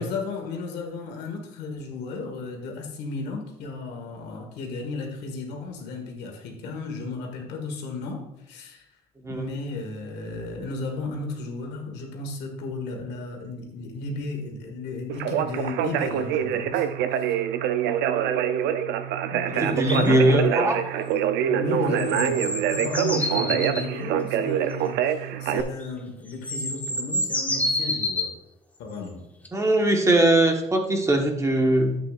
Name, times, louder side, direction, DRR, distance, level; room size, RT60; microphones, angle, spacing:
voice 1, 0.0-8.9 9.3-16.8 17.1-17.3 19.2-20.4 21.4-28.3 28.8-29.2, left 3 dB, 85° left, 2 dB, 1.9 m, -34 dB
Conversation, 15.1-25.6, right 10 dB, 85° right, 0.6 m, -25 dB
voice 2, 19.5-20.8 29.5-32.0, right 1 dB, 15° right, 3 dB, 1.3 m, -21 dB
sound 1, 19.9-20.1 22.0-23.9 25.8-25.9 26.3-28.3 29.4-29.5, left 1 dB, 10° left, 1.0 m, -28 dB
9.8 x 8.3 x 2.5 m, 0.89 s
cardioid pair, 110°, 17 cm